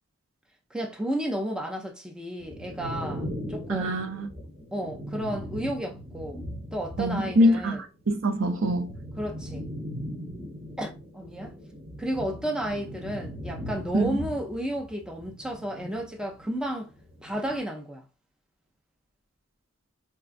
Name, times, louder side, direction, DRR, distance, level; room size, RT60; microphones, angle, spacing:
voice 1, 0.7-3.9 4.7-6.4 6.7-7.8 9.2-9.6 10.8-11.5 12.0-16.9 17.2-18.0, right 1 dB, 5° right, 0.4 m, -32 dB
sound 1, 2.4-7.7 8.0-16.6 16.9-17.6, equal, 30° right, 1.0 m, -39 dB
voice 2, 3.7-4.3 7.0-7.8 8.1-9.0 13.9-14.2, equal, 70° right, 0.5 m, -24 dB
4.5 x 2.3 x 2.5 m
head